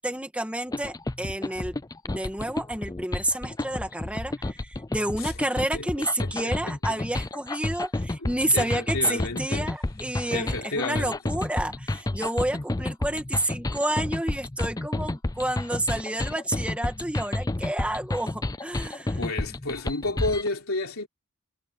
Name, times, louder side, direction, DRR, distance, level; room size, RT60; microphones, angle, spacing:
voice 1, 0.0-1.7 2.0-19.2, right 1 dB, 5° right, 2.2 m, -30 dB
sound 1, 0.7-20.5, left 2 dB, 15° left, 0.5 m, -30 dB
voice 2, 5.7-6.5 6.9-7.0 8.2-9.7 10.3-11.1 19.2-21.1, left 2 dB, 65° left, 3.6 m, -31 dB
head